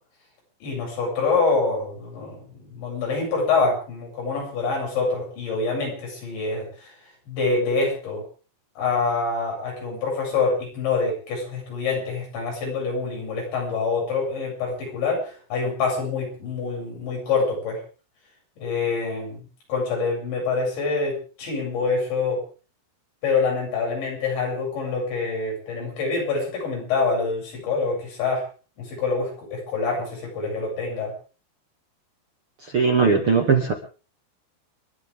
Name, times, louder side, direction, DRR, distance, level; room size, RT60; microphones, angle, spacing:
voice 1, 0.6-2.4 2.7-6.9 7.3-8.2 8.8-17.8 18.6-19.4 19.7-22.4 23.2-28.4 28.8-31.1, left 4 dB, 80° left, -1 dB, 10.0 m, -26 dB
voice 2, 32.7-33.7, right 5 dB, 45° right, 2 dB, 1.9 m, -19 dB
30.0 x 12.0 x 3.7 m, 0.37 s
omnidirectional pair, 5.1 m